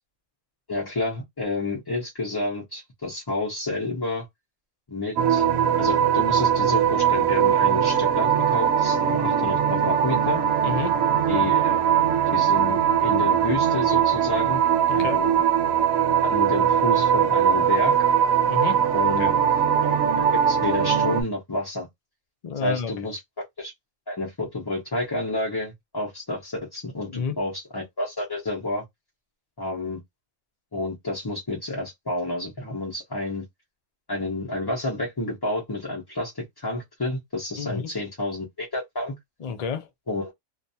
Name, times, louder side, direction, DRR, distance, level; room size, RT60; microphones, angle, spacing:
voice 1, 0.7-4.3 4.9-5.4 5.8-10.4 11.3-11.8 12.3-14.6 14.9-15.4 16.2-18.0 18.9-19.4 19.8-21.9 22.6-23.7 24.1-28.8 29.6-30.0 30.7-33.5 34.1-39.1 40.1-40.3, left 2 dB, 25° left, 0.5 m, -30 dB
sound 1, 5.2-21.2, right 8 dB, 70° right, 0.9 m, -21 dB
voice 2, 10.6-11.0 14.9-15.2 18.4-18.8 19.2-19.3 22.4-22.9 27.1-27.4 37.6-37.9 39.4-39.9, left 6 dB, 80° left, 0.3 m, -30 dB
2.5 x 2.3 x 2.6 m
omnidirectional pair, 1.5 m